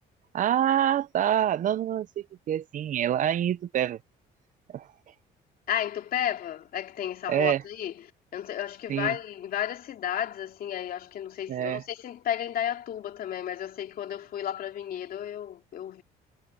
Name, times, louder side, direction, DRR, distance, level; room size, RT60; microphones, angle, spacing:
voice 1, 0.3-4.0 4.7-4.9 7.3-7.6 8.9-9.1 11.5-11.8, right 10 dB, 50° right, 0.7 m, -26 dB
voice 2, 5.7-8.0 8.3-16.0, left 10 dB, 60° left, 2.8 m, -33 dB
cardioid pair, 110°, 17 cm